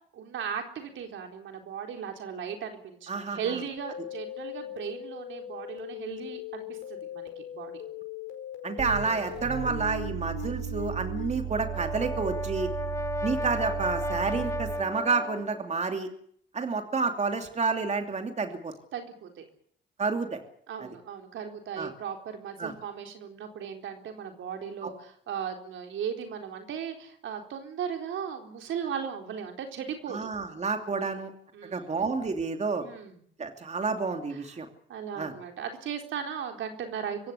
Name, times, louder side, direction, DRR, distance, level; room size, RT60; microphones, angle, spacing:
voice 1, 0.1-7.8 18.9-19.4 20.7-30.3 30.9-31.2 31.5-31.9 32.7-33.2 34.9-37.3, right 7 dB, 75° right, 4 dB, 4.1 m, -37 dB
voice 2, 3.1-3.4 8.6-12.7 13.2-16.1 16.5-18.7 20.0-20.4 21.8-21.9 22.6-22.7 24.8-24.9 30.1-31.3 31.7-32.8 33.4-34.7 35.2-35.3, right 4 dB, 35° right, 5 dB, 2.9 m, -29 dB
sound 1, 3.8-11.3, left 10 dB, 75° left, 4.9 m, -40 dB
sound 2, 8.8-15.0, right 12 dB, 60° right, 4.6 m, -36 dB
Brass instrument, 11.5-15.7, left 2 dB, 15° left, 1.4 m, -34 dB
25.0 x 16.0 x 8.5 m, 0.64 s
cardioid pair, 90°, 20 cm